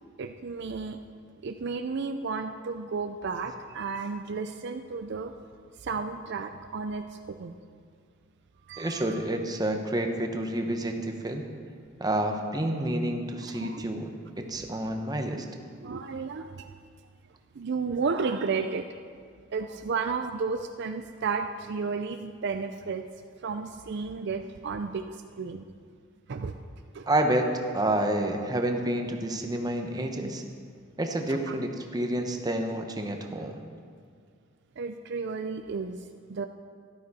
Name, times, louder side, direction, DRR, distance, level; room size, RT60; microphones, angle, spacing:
voice 1, 0.2-1.0 1.4-5.3 5.8-7.5 8.7-9.2 13.5-13.9 15.8-16.7 17.5-18.9 19.5-23.0 23.4-25.7 26.3-26.6 26.9-27.1 31.3-31.5 34.8-36.5, right 4 dB, 55° right, 7 dB, 0.5 m, -33 dB
voice 2, 8.8-11.5 12.0-15.5 27.1-27.5 27.7-30.4 31.0-33.6, right 1 dB, 20° right, 4 dB, 0.9 m, -29 dB
13.5 x 12.0 x 4.2 m, 2.1 s
head